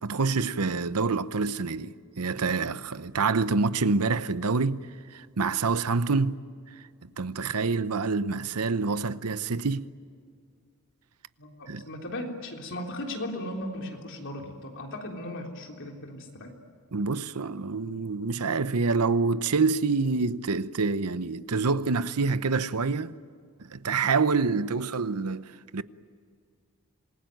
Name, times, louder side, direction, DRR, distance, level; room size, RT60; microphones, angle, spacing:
voice 1, 0.0-4.8 5.1-6.4 7.0-9.9 11.7-11.8 16.9-23.1 23.6-25.8, right 4 dB, 85° right, 0.8 m, -27 dB
voice 2, 11.4-16.5, left 1 dB, 55° left, 3.6 m, -37 dB
27.0 x 21.0 x 9.2 m
head